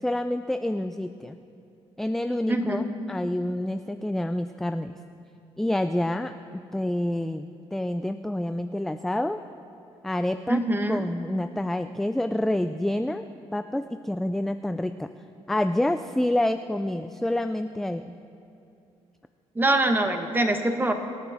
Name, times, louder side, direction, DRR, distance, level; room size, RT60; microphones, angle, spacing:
voice 1, 0.0-1.4 2.0-5.0 5.6-9.4 10.0-10.6 10.9-13.2 13.5-15.1 15.5-18.0, left 1 dB, 5° left, 9 dB, 0.4 m, -28 dB
voice 2, 2.5-2.9 3.3-3.4 10.5-11.0 19.5-20.9, right 1 dB, 15° right, 6 dB, 1.2 m, -24 dB
26.5 x 8.9 x 3.6 m, 2.6 s
cardioid pair, 95°, 11 cm